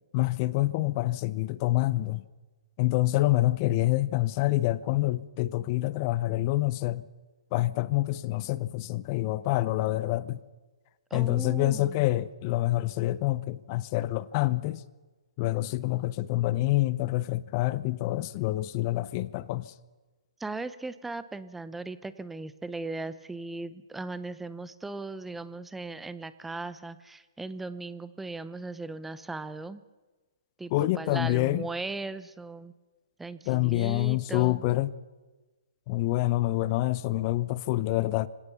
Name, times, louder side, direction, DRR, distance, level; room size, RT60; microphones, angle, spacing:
voice 1, 0.1-2.2 2.8-7.0 7.5-10.4 11.1-14.8 15.4-19.7 30.7-31.7 33.5-34.9 35.9-38.3, left 17 dB, 35° left, 0.7 m, -27 dB
voice 2, 11.1-12.1 20.4-29.8 30.6-32.7 33.2-34.6, right 3 dB, 5° right, 0.7 m, -38 dB
25.5 x 17.0 x 6.9 m
figure-of-eight pair, 130°, 3 cm